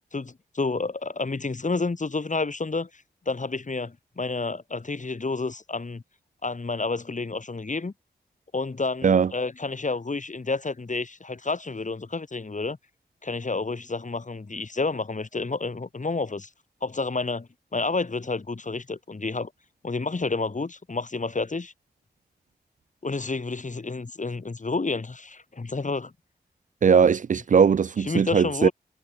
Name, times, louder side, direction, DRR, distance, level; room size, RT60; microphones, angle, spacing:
voice 1, 0.1-6.0 6.4-7.9 8.5-12.8 13.2-16.5 16.8-19.5 19.8-21.7 23.0-26.1 28.1-28.7, left 3 dB, 45° left, 5.2 m, -30 dB
voice 2, 26.8-28.7, right 6 dB, 50° right, 0.4 m, -19 dB
cardioid pair, 55°, 17 cm